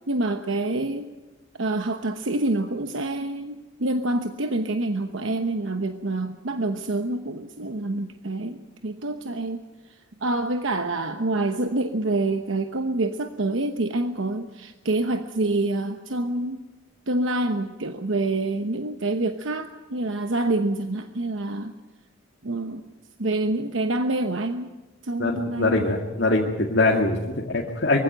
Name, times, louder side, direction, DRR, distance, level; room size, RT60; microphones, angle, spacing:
voice 1, 0.1-1.1 1.6-9.6 10.2-16.6 17.1-21.7 22.4-22.9 23.2-24.7 25.0-25.9, right 2 dB, 80° right, 7 dB, 1.0 m, -27 dB
voice 2, 25.2-28.0, left 2 dB, 65° left, 0 dB, 2.1 m, -23 dB
23.5 x 16.0 x 9.1 m, 1.2 s
head